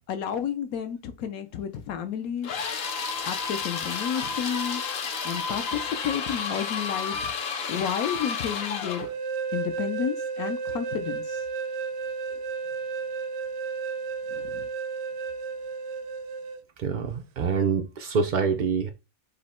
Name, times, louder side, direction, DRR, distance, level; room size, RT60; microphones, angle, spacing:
voice 1, 0.1-2.6 3.3-4.8 5.2-7.2 7.7-9.1 9.5-11.4 14.3-14.6, left 8 dB, 80° left, 1.0 m, -31 dB
sound 1, 2.4-9.1, left 5 dB, 55° left, 0.7 m, -31 dB
sound 2, 9.0-16.6, right 5 dB, 70° right, 0.8 m, -32 dB
voice 2, 16.8-18.9, right 5 dB, 90° right, 0.4 m, -26 dB
5.1 x 2.1 x 4.2 m
omnidirectional pair, 1.5 m